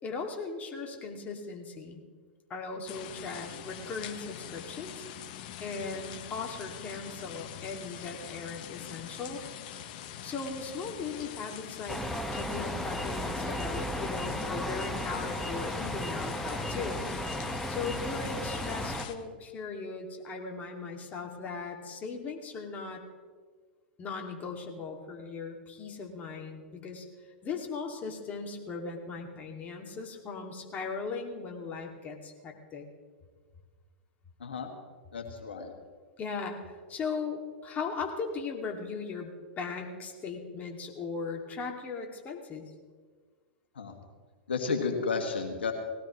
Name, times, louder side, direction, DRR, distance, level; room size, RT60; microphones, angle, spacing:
voice 1, 0.0-2.0 2.5-5.1 5.6-9.4 10.2-12.0 12.3-17.1 17.7-23.0 24.0-27.1 27.4-32.8 36.2-42.7, left 4 dB, 30° left, 2 dB, 2.3 m, -38 dB
sound 1, 2.9-19.1, left 10 dB, 55° left, 1.2 m, -44 dB
sound 2, 11.9-19.0, left 1 dB, 5° left, 1.1 m, -34 dB
voice 2, 35.1-35.7 43.8-43.9 44.5-45.7, left 4 dB, 80° left, 3 dB, 1.9 m, -32 dB
19.5 x 17.0 x 3.1 m, 1.5 s
hypercardioid pair, 100°, 6 cm